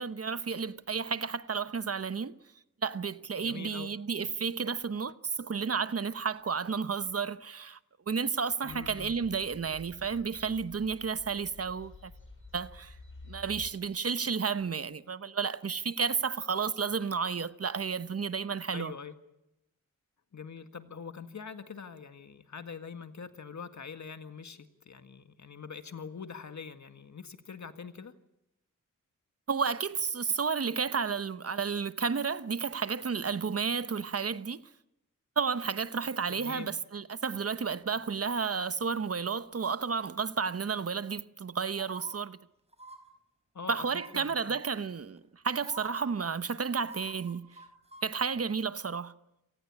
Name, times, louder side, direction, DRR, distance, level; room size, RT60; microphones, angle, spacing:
voice 1, 0.0-2.3 2.8-7.8 8.1-12.1 12.5-12.9 13.3-18.9 29.5-34.6 35.4-42.4 43.7-47.5 48.0-49.1, right 5 dB, 50° right, 0.9 m, -32 dB
voice 2, 3.4-3.9 8.6-9.2 18.7-19.2 20.3-28.1 36.3-36.7 43.5-44.6, left 6 dB, 60° left, 1.8 m, -44 dB
sound 1, 8.7-13.7, left 3 dB, 40° left, 6.6 m, -51 dB
sound 2, 41.8-42.1 42.7-43.0 43.9-44.3 45.2-45.3 45.6-46.0 46.8-48.1 48.4-48.5, right 1 dB, 20° right, 5.7 m, -47 dB
27.0 x 18.5 x 8.4 m
cardioid pair, 70°, 32 cm